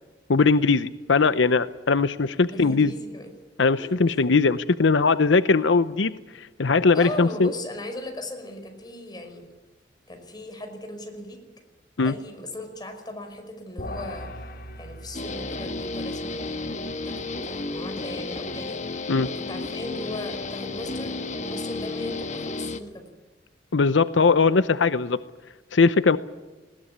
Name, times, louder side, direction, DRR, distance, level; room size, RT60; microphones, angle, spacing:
voice 1, 0.3-2.9 3.6-7.5 12.0-12.1 19.1-19.3 23.7-25.2 25.7-26.2, left 4 dB, 85° left, 14 dB, 0.7 m, -20 dB
voice 2, 2.5-3.3 3.8-3.9 6.9-9.5 10.1-11.4 12.0-14.3 14.8-16.8 17.0-19.0 19.2-23.1, left 1 dB, 25° left, 4 dB, 5.2 m, -38 dB
sound 1, 13.8-19.3, left 1 dB, 55° left, 4.1 m, -42 dB
Guitar, 15.1-22.8, left 3 dB, 40° left, 1.4 m, -32 dB
20.5 x 18.5 x 9.7 m, 1.2 s
head